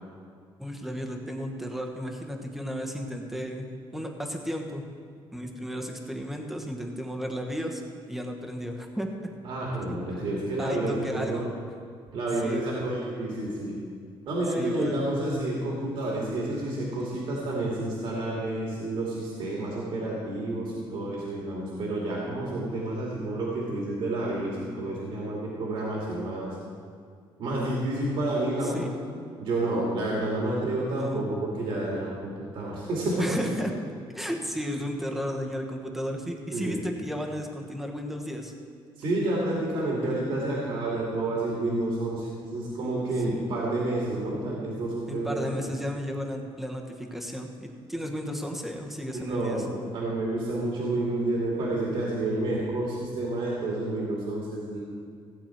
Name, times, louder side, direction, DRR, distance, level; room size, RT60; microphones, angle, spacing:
voice 1, 0.6-3.7 3.9-4.8 5.3-7.8 8.1-9.1 9.9-10.0 10.6-11.5 12.4-12.7 14.5-15.0 28.6-29.0 31.0-31.2 33.2-33.7 34.1-38.5 43.2-43.5 45.1-49.6, equal, 5° right, 2 dB, 1.1 m, -34 dB
voice 2, 9.4-11.4 12.1-13.8 14.3-26.6 27.4-28.8 29.4-33.4 36.5-36.8 39.0-45.4 49.1-54.8, right 2 dB, 65° right, -4 dB, 2.4 m, -29 dB
16.5 x 8.6 x 4.5 m, 2.2 s
cardioid pair, 150°, 10 cm